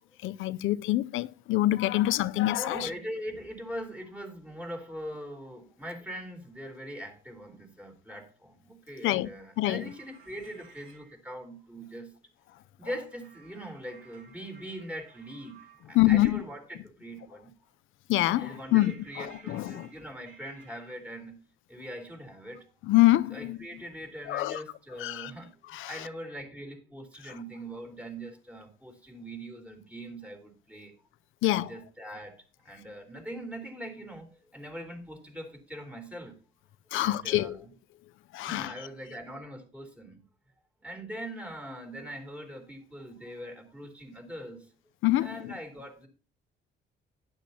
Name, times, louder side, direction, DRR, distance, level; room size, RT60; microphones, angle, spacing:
voice 1, 0.2-2.9 9.0-9.3 9.6-9.9 15.9-16.4 18.1-19.9 22.8-23.7 24.3-24.6 25.0-25.3 25.7-26.1 27.2-27.3 31.4-31.7 36.9-37.6 38.3-38.7 45.0-45.5, left 16 dB, 85° left, 0.6 m, -26 dB
voice 2, 2.6-12.1 12.8-17.5 18.4-21.4 21.7-22.7 23.3-30.9 31.4-36.4 36.9-37.6 38.4-40.3 40.8-44.7 45.2-46.1, equal, 5° right, 3.5 m, -42 dB
sound 1, 9.5-11.1 13.1-15.9 18.5-21.0, right 5 dB, 85° right, 2.5 m, -56 dB
12.0 x 10.0 x 2.9 m
cardioid pair, 90°, 20 cm